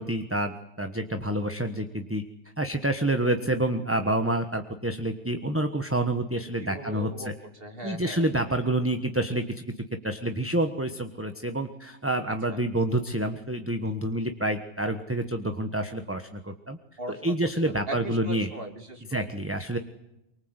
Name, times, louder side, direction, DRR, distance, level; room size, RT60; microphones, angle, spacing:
voice 1, 0.0-2.2 2.6-7.3 7.8-9.6 10.0-16.8 17.2-18.5 19.1-19.8, right 1 dB, 10° right, 7 dB, 1.3 m, -28 dB
voice 2, 6.6-8.3 12.5-12.6 17.0-17.3 17.6-19.3, right 1 dB, 45° right, 5 dB, 3.3 m, -39 dB
24.5 x 23.0 x 8.2 m, 0.87 s
omnidirectional pair, 1.3 m